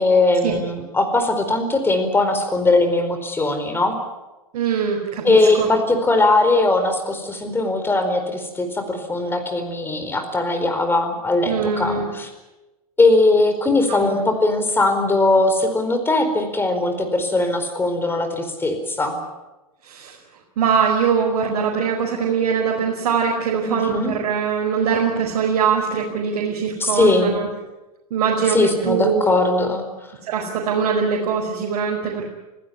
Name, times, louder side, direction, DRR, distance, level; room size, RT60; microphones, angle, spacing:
voice 1, 0.0-3.9 5.2-12.3 13.0-19.2 23.6-24.1 26.8-27.3 28.5-29.8, left 2 dB, 10° left, 7 dB, 4.6 m, -20 dB
voice 2, 4.5-5.7 11.4-12.1 13.9-14.1 19.8-20.1 20.6-27.5 28.1-29.2 30.3-32.2, right 6 dB, 60° right, -2 dB, 5.1 m, -22 dB
25.0 x 16.0 x 9.6 m, 1.1 s
hypercardioid pair, 110°, 19 cm